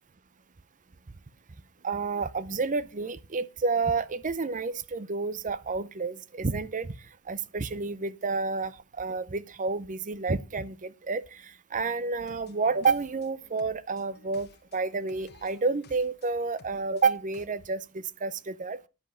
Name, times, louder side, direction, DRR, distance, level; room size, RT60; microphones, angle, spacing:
voice 1, 1.8-7.0 7.3-18.8, right 4 dB, 35° right, 0.6 m, -30 dB
sound 1, 12.2-17.5, left 3 dB, 50° left, 1.1 m, -56 dB
10.5 x 7.7 x 5.6 m
head